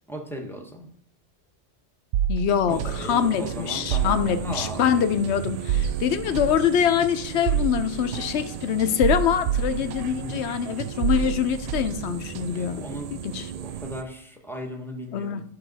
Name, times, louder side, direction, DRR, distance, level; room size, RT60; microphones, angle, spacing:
voice 1, 0.1-0.9 2.7-4.9 9.8-10.5 12.5-13.1 13.5-15.4, equal, ahead, 2 dB, 0.9 m, -37 dB
sound 1, 2.1-10.5 10.8-12.7, right 9 dB, 85° right, 0.9 m, -29 dB
voice 2, 2.3-12.8 13.1-13.5 15.1-15.4, left 8 dB, 70° left, 10 dB, 0.9 m, -24 dB
sound 2, 2.7-14.0, right 9 dB, 60° right, 0.4 m, -37 dB
11.5 x 5.5 x 4.0 m, 0.71 s
omnidirectional pair, 1.2 m